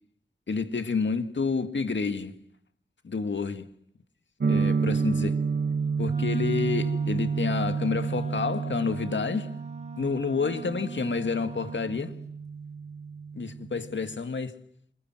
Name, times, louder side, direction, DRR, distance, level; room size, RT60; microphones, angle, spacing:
voice 1, 0.5-2.4 3.0-3.7 4.5-5.5 6.0-9.6 10.0-12.2 13.3-14.6, left 5 dB, 80° left, 1.8 m, -29 dB
sound 1, 4.4-14.2, right 5 dB, 60° right, 1.0 m, -30 dB
Wind instrument woodwind instrument, 6.0-12.1, right 5 dB, 35° right, 4.2 m, -42 dB
27.5 x 22.5 x 7.6 m
wide cardioid pair, 55°, 19 cm